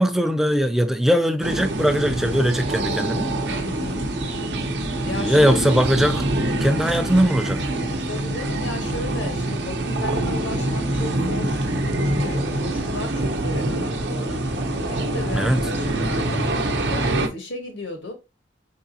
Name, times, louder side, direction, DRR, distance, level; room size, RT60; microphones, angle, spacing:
voice 1, 0.0-3.3 5.1-6.2 6.6-7.6 15.3-15.6, equal, ahead, 0.3 m, -20 dB
sound 1, 1.4-17.3, right 1 dB, 65° right, 0.7 m, -25 dB
voice 2, 3.5-4.1 5.0-5.8 8.0-11.6 12.0-16.5 16.9-18.1, left 2 dB, 85° left, 1.4 m, -35 dB
4.8 x 3.6 x 2.8 m
head